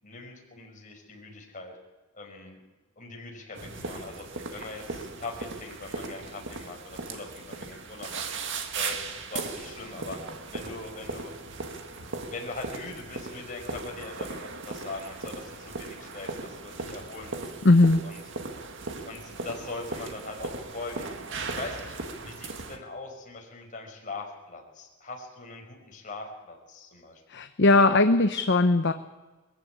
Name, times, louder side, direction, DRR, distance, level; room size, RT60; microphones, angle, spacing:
voice 1, 0.0-1.7 2.1-2.6 3.0-8.2 8.7-10.2 10.5-11.3 12.3-17.4 18.0-18.2 19.0-21.2 21.4-22.0 22.2-27.2, left 3 dB, 40° left, 1 dB, 5.7 m, -41 dB
sound 1, 3.5-22.8, right 3 dB, 60° right, 1.9 m, -38 dB
voice 2, 17.6-18.0 27.3-28.9, left 2 dB, 55° left, 8 dB, 0.9 m, -19 dB
23.0 x 15.0 x 8.6 m, 1.2 s
head